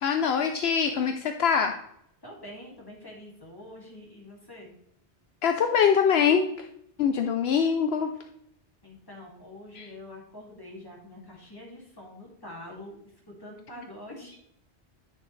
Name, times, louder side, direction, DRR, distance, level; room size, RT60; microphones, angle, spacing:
voice 1, 0.0-1.7 5.4-6.7 7.0-8.1 9.8-9.9, left 7 dB, 70° left, 6 dB, 0.9 m, -23 dB
voice 2, 2.2-4.7 8.8-13.0 13.3-14.4, left 1 dB, 20° left, -3 dB, 2.5 m, -45 dB
9.5 x 6.3 x 3.2 m, 0.73 s
omnidirectional pair, 1.1 m